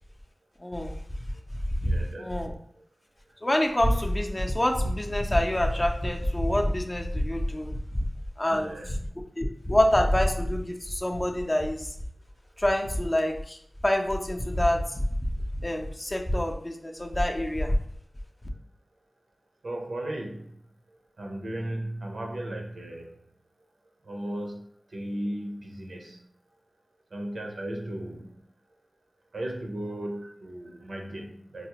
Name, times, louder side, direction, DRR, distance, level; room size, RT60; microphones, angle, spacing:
voice 1, 0.6-1.0 1.8-2.5 3.4-8.1 8.4-9.0 9.4-11.9 12.6-13.6 13.8-17.8, left 1 dB, 25° left, 2 dB, 0.4 m, -26 dB
voice 2, 1.8-2.4 2.8-2.9 3.3-3.4 8.5-9.0 19.6-20.6 20.9-23.2 24.0-24.6 24.9-26.2 27.1-28.4 29.3-31.7, right 1 dB, 90° right, 1 dB, 0.7 m, -36 dB
4.7 x 2.0 x 2.8 m, 0.67 s
wide cardioid pair, 85°, 0 cm